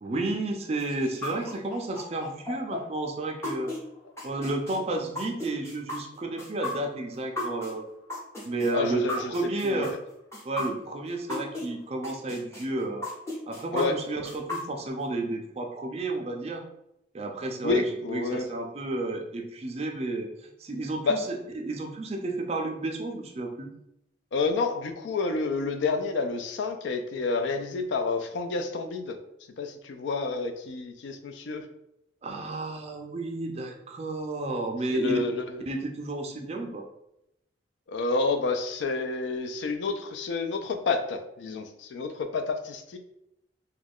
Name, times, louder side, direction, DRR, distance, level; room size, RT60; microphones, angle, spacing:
voice 1, 0.0-3.7 4.2-7.9 8.4-9.9 10.5-13.1 13.5-16.6 17.1-17.8 18.1-23.7 32.2-35.2 35.7-36.9, right 2 dB, 35° right, 3 dB, 0.3 m, -31 dB
sound 1, 0.8-11.7 12.0-15.0, left 2 dB, 15° left, 0.7 m, -35 dB
voice 2, 8.7-10.0 13.7-14.0 17.6-18.5 21.0-21.2 24.3-29.2 29.6-31.7 34.9-35.6 37.9-43.0, left 4 dB, 75° left, 7 dB, 0.3 m, -29 dB
2.3 x 2.2 x 3.4 m, 0.82 s
head